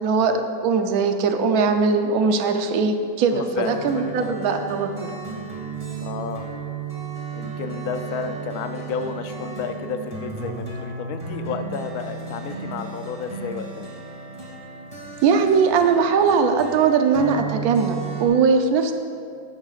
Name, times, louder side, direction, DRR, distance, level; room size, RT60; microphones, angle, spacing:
voice 1, 0.0-5.1 15.2-18.9, right 5 dB, 65° right, 6 dB, 1.0 m, -20 dB
voice 2, 3.3-4.7 6.0-6.5 7.3-13.9, left 6 dB, 75° left, 8 dB, 0.8 m, -32 dB
sound 1, 3.6-18.3, right 5 dB, 15° right, 2.2 m, -34 dB
15.0 x 11.5 x 2.5 m, 2.3 s
omnidirectional pair, 2.2 m